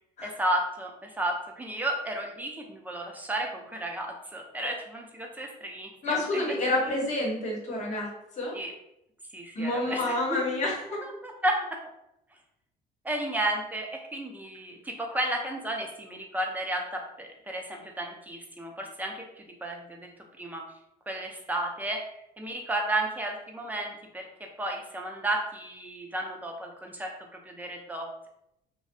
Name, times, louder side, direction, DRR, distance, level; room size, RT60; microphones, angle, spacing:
voice 1, 0.2-6.4 6.8-6.9 8.5-8.7 9.3-10.4 11.2-11.6 13.0-20.1 20.4-20.7 21.1-22.0 22.4-24.3 24.6-27.1 27.5-28.3, right 1 dB, 10° right, 1 dB, 0.4 m, -33 dB
voice 2, 6.0-8.6 9.5-10.8, left 2 dB, 45° left, -2 dB, 0.9 m, -29 dB
2.5 x 2.0 x 2.5 m, 0.82 s
cardioid pair, 110°, 17 cm